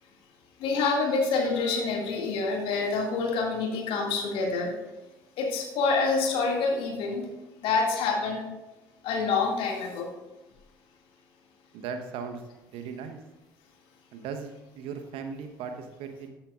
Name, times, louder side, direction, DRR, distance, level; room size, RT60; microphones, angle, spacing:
voice 1, 0.6-4.7 5.4-7.3 7.6-8.5 9.0-10.1, left 4 dB, 60° left, 0 dB, 2.2 m, -27 dB
voice 2, 11.7-12.4 12.7-13.2 14.1-16.3, right 6 dB, 60° right, 6 dB, 1.1 m, -37 dB
14.5 x 10.5 x 2.5 m, 1.0 s
figure-of-eight pair, 55°, 11 cm